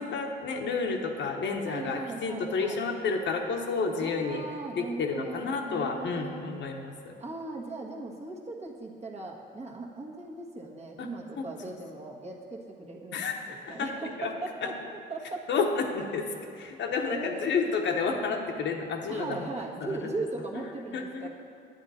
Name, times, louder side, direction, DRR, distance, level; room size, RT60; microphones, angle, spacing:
voice 1, 0.0-4.4 4.8-7.1 11.0-11.1 11.3-11.8 13.1-13.9 14.2-14.3 14.6-14.7 15.5-16.3 16.5-19.5 19.8-20.1 20.9-21.3, left 4 dB, 65° left, 2 dB, 1.0 m, -31 dB
voice 2, 1.6-2.8 4.0-6.4 7.2-14.7 15.1-15.5 17.1-17.4 19.1-21.3, right 2 dB, 35° right, 0 dB, 1.5 m, -38 dB
9.3 x 9.2 x 4.2 m, 2.5 s
cardioid pair, 90°, 20 cm